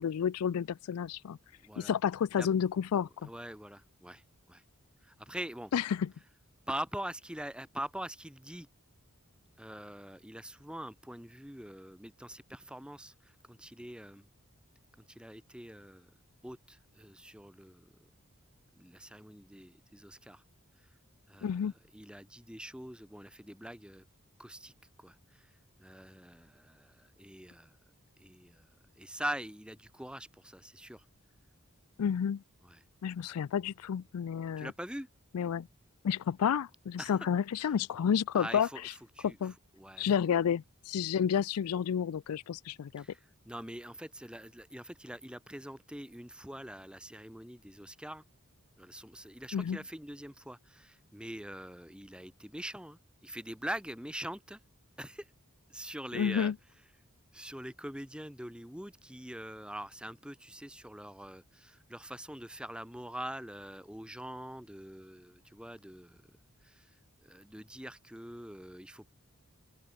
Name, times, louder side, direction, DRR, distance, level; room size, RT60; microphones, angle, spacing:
voice 1, 0.0-1.4 1.8-3.3 5.7-6.1 21.4-21.7 32.0-32.4 33.0-34.7 35.3-35.7 36.0-38.7 39.2-39.5 40.0-43.0 49.5-49.8 56.1-56.5, left 8 dB, 85° left, 0.4 m, -30 dB
voice 2, 1.6-1.9 2.4-2.5 3.2-4.6 5.0-5.7 6.7-8.7 9.6-14.3 15.0-16.1 16.4-18.1 18.8-20.4 21.3-24.0 24.4-24.7 25.0-25.5 25.8-27.8 28.2-28.7 29.0-31.0 32.6-32.8 34.6-35.1 37.0-37.2 37.6-37.7 38.3-38.8 39.2-40.1 43.0-48.2 48.8-54.6 55.0-55.3 55.7-56.5 57.3-66.2 66.6-67.0 67.2-69.1, right 1 dB, 5° right, 2.6 m, -44 dB
open air
head